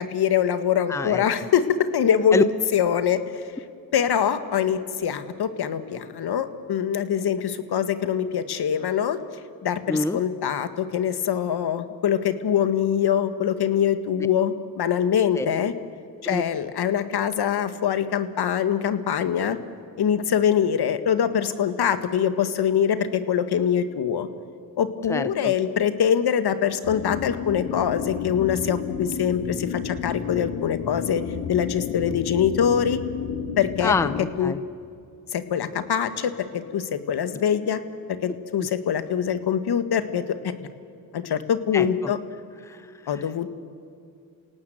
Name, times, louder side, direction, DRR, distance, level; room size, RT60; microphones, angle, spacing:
voice 1, 0.0-1.7 1.9-2.5 2.7-3.2 3.9-9.2 9.6-15.7 16.2-19.6 20.0-24.3 24.8-31.2 31.5-33.0 33.6-33.9 34.4-34.5 35.3-37.8 38.2-40.2 41.1-42.2 43.1-43.5, left 8 dB, 55° left, 10 dB, 1.8 m, -23 dB
voice 2, 0.9-1.2 2.3-2.4 9.9-10.2 15.4-15.5 16.3-16.4 25.1-25.5 32.1-32.2 33.8-34.6 38.6-38.7 41.7-42.1 42.6-42.8 43.1-43.2, left 3 dB, 5° left, 14 dB, 0.8 m, -26 dB
sound 1, 26.8-34.2, left 7 dB, 85° left, 2.0 m, -32 dB
28.0 x 18.0 x 8.0 m, 2.3 s
supercardioid pair, 65°, 45 cm